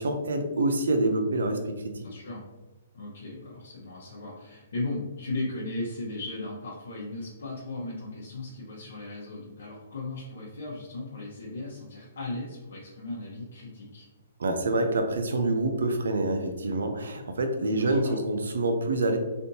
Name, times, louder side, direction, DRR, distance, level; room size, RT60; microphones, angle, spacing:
voice 1, 0.0-2.0 14.4-19.2, right 2 dB, 90° right, 5 dB, 0.5 m, -26 dB
voice 2, 2.0-2.4 2.9-14.1 17.8-18.2, left 2 dB, 75° left, -6 dB, 0.9 m, -37 dB
3.4 x 2.6 x 2.7 m, 1.2 s
hypercardioid pair, 155°, 0 cm